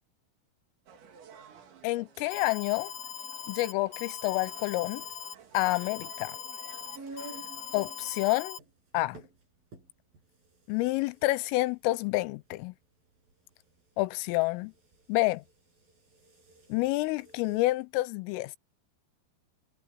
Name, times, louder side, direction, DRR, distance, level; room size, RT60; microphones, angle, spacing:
sound 1, 0.9-8.3, right 7 dB, 65° right, 5.5 m, -54 dB
voice 1, 1.8-2.9 3.5-5.0 5.5-6.4 7.7-8.6 8.9-9.2 10.7-12.7 14.0-14.7 15.1-15.4 16.7-18.5, left 20 dB, 85° left, 3.2 m, -28 dB
Alarm, 2.3-8.6, left 8 dB, 50° left, 2.6 m, -41 dB
sound 2, 4.2-17.8, right 2 dB, 45° right, 9.0 m, -53 dB
omnidirectional pair, 5.9 m